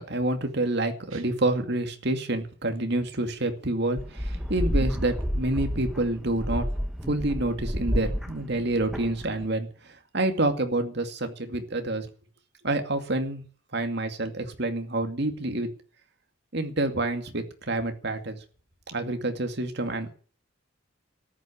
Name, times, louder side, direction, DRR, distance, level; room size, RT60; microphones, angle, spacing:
voice 1, 0.0-6.7 7.1-12.1 12.6-13.4 13.7-15.7 16.5-18.4 18.9-20.1, right 2 dB, 55° right, 6 dB, 2.4 m, -28 dB
sound 1, 1.1-2.5, right 3 dB, 80° right, 1.2 m, -50 dB
sound 2, 4.0-9.4, equal, 5° right, 1.5 m, -30 dB
14.0 x 10.5 x 8.6 m, 0.42 s
head